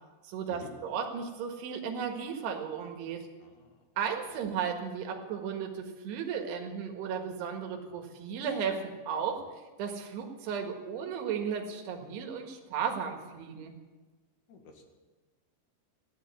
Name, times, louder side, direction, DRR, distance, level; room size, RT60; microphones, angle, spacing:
voice 1, 0.2-3.3 4.0-9.4 9.8-13.7, right 7 dB, 75° right, 3 dB, 3.6 m, -35 dB
voice 2, 3.4-3.8 14.5-14.8, left 5 dB, 55° left, 4 dB, 2.7 m, -50 dB
15.0 x 10.5 x 8.3 m, 1.3 s
omnidirectional pair, 5.0 m